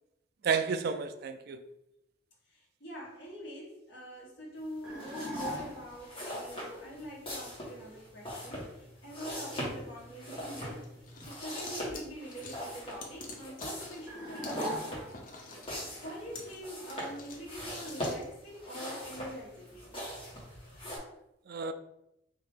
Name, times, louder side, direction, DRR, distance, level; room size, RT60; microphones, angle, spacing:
voice 1, 0.4-1.6 21.5-21.7, right 5 dB, 55° right, 0.3 m, -31 dB
voice 2, 2.5-15.1 16.0-20.1, equal, 60° left, 1.6 m, -44 dB
sound 1, 4.8-6.0 14.1-15.4, equal, 5° right, 1.2 m, -40 dB
sound 2, 4.9-21.0, equal, 30° left, 1.5 m, -41 dB
sound 3, 10.8-14.1 14.4-14.7 15.1-18.3, left 3 dB, 45° left, 0.7 m, -47 dB
4.4 x 2.8 x 3.6 m
head